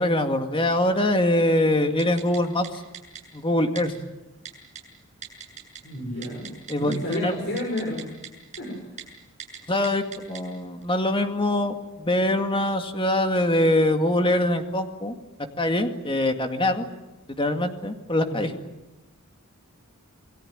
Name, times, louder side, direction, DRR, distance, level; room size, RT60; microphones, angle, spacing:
voice 1, 0.0-2.8 3.3-3.9 6.7-7.3 9.7-15.2 15.6-16.9 17.3-18.5, left 1 dB, 25° left, 6 dB, 2.1 m, -23 dB
Typing, 2.0-2.4 2.6-2.7 2.9-3.2 3.8-3.9 4.5-4.8 5.2-5.8 6.1-7.2 7.6-8.3 8.5-8.6 9.0-9.1 9.4-9.6 9.8-10.4 10.8-10.9, right 8 dB, 35° right, 7.2 m, -39 dB
voice 2, 5.8-6.5 6.8-8.0 8.6-8.8 18.2-18.5, left 1 dB, 50° left, 0 dB, 6.5 m, -31 dB
28.5 x 21.5 x 8.9 m, 1.1 s
head